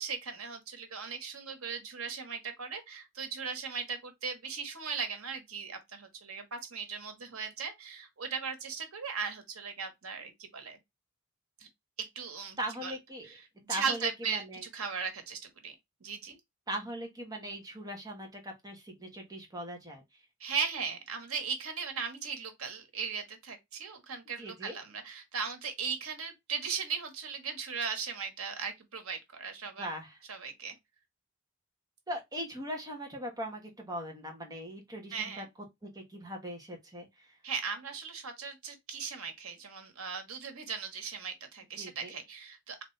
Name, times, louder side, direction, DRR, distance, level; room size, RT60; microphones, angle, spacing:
voice 1, 0.0-10.8 11.6-11.7 12.0-13.0 13.2-15.7 16.0-16.4 20.4-29.9 30.3-30.7 35.1-35.5 37.4-42.8, right 6 dB, 90° right, 1.2 m, -38 dB
voice 2, 12.6-13.4 13.7-14.6 16.7-20.2 24.4-24.8 29.8-30.2 32.1-35.4 35.8-37.3 41.8-42.2, equal, 15° right, 1.2 m, -40 dB
3.9 x 3.0 x 3.2 m
head